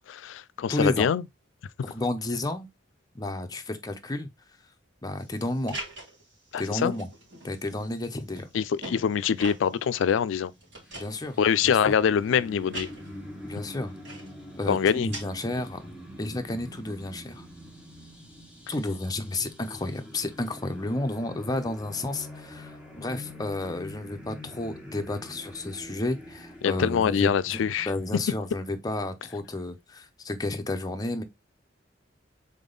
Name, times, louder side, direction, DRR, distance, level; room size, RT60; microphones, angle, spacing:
voice 1, 0.1-1.2 6.5-6.9 8.5-10.5 11.4-12.9 14.7-15.1 26.6-27.9, left 7 dB, 75° left, 0.3 m, -24 dB
voice 2, 0.7-1.1 1.9-2.7 3.1-4.3 5.0-5.8 6.6-7.1 7.4-8.5 10.9-11.4 11.6-11.9 13.4-13.9 14.6-15.9 16.2-17.5 18.7-27.6 27.9-31.2, left 2 dB, 20° left, 0.6 m, -31 dB
sound 1, 5.2-15.2, right 1 dB, 65° right, 2.3 m, -45 dB
sound 2, 10.8-28.4, left 1 dB, 5° right, 1.1 m, -45 dB
3.9 x 3.6 x 3.8 m
head